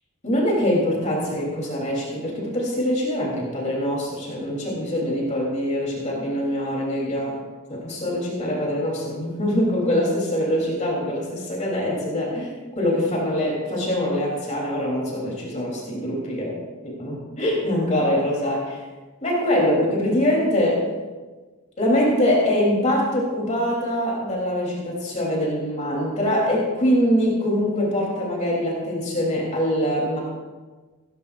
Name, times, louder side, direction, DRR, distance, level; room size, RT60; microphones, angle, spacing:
voice 1, 0.2-7.3 7.7-12.5 12.8-16.5 16.8-18.8 19.2-20.8 21.8-30.2, equal, 35° left, -3 dB, 3.3 m, -23 dB
17.0 x 15.5 x 2.5 m, 1.3 s
head